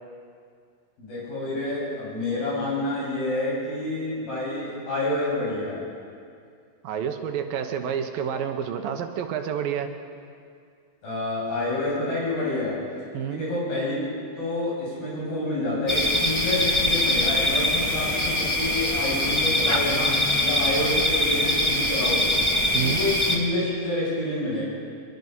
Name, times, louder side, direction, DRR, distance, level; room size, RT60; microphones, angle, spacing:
voice 1, 1.0-5.8 11.0-12.8 13.2-14.0 14.4-22.4 22.7-24.6, left 2 dB, 85° left, -6 dB, 9.7 m, -28 dB
voice 2, 6.8-9.9 13.1-13.4 22.7-23.0, right 8 dB, 75° right, 6 dB, 2.9 m, -29 dB
sound 1, 15.9-23.4, left 1 dB, 20° left, 0.8 m, -23 dB
24.0 x 22.0 x 5.6 m, 2.3 s
omnidirectional pair, 4.2 m